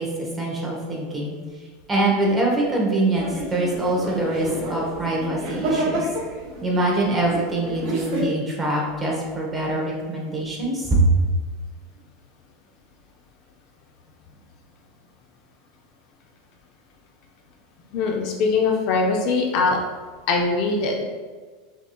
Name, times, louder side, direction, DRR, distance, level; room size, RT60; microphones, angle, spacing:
voice 1, 0.0-1.4 1.9-6.1 6.6-11.1, right 2 dB, 15° right, -3 dB, 0.9 m, -24 dB
sound 1, 3.1-8.2, right 1 dB, 55° right, 1.4 m, -30 dB
voice 2, 17.9-19.8 20.3-21.0, left 4 dB, 45° left, 1 dB, 0.5 m, -21 dB
5.9 x 2.7 x 2.3 m, 1.4 s
supercardioid pair, 160°, 0 cm